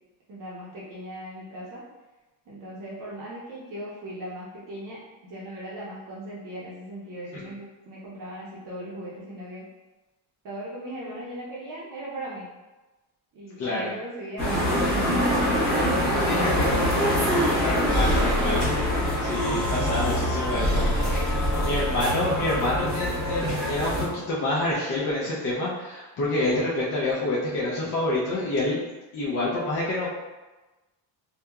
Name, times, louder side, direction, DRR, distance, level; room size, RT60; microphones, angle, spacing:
voice 1, 0.3-1.8 2.5-9.6 10.4-12.5 13.3-16.6 19.7-20.5, right 1 dB, 45° right, -7 dB, 0.7 m, -38 dB
voice 2, 13.6-13.9 16.1-16.7 17.6-18.6 19.2-20.8 21.6-28.8 29.1-30.1, left 2 dB, 35° left, -7 dB, 0.5 m, -27 dB
sound 1, 14.4-24.1, equal, 15° right, 1.3 m, -25 dB
Breathing, 17.0-22.1, equal, 20° left, 1.2 m, -28 dB
2.8 x 2.3 x 2.3 m, 1.1 s
cardioid pair, 155°, 46 cm